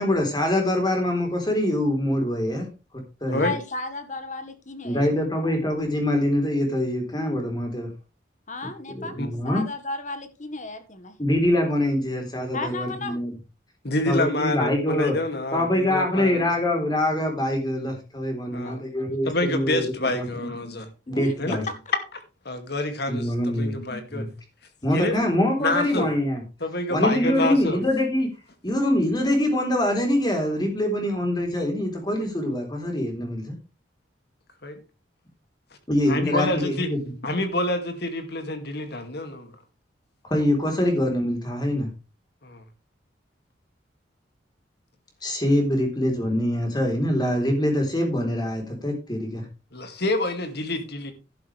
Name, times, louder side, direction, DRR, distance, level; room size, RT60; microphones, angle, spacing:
voice 1, 0.0-2.6 3.2-3.5 4.8-7.9 8.9-9.6 11.2-13.3 14.1-15.2 15.5-20.5 21.1-21.7 23.1-23.7 24.1-24.3 24.8-26.4 26.9-28.3 28.6-33.5 35.9-37.0 40.3-41.9 45.2-49.5, left 1 dB, 25° left, 3 dB, 3.8 m, -24 dB
voice 2, 3.3-5.1 8.5-9.2 9.4-11.1 12.5-13.2 18.6-18.8 21.1-21.3 25.1-25.5, left 2 dB, 40° left, 9 dB, 1.7 m, -34 dB
voice 3, 13.8-16.5 18.5-18.8 19.2-20.9 21.4-21.6 22.4-24.3 24.9-25.2 25.6-26.1 26.6-27.8 34.6-34.8 36.1-39.5 42.4-42.6 49.7-51.1, left 2 dB, 60° left, 7 dB, 2.4 m, -27 dB
12.5 x 10.5 x 3.4 m, 0.30 s
head